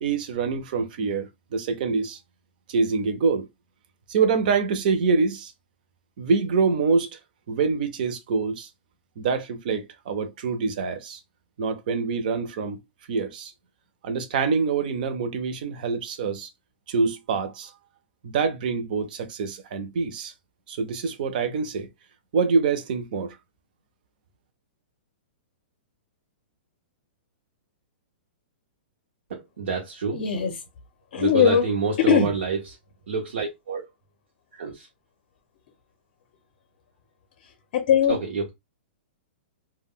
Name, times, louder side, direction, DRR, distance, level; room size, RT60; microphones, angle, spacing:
voice 1, 0.0-2.2 2.7-3.5 4.1-5.5 6.2-7.2 7.5-8.7 9.2-11.2 11.6-12.8 13.1-13.5 14.0-16.5 16.9-17.7 18.2-20.3 20.7-21.9 22.3-23.4, right 5 dB, 50° right, 0.5 m, -25 dB
voice 2, 29.3-30.2 31.2-32.8 33.1-33.9 34.5-34.9 38.1-38.5, right 5 dB, 85° right, 0.7 m, -28 dB
voice 3, 30.1-30.5 31.1-31.6 32.0-32.3 37.7-38.2, left 8 dB, 45° left, 0.5 m, -20 dB
2.2 x 2.1 x 3.5 m
hypercardioid pair, 165°, 6 cm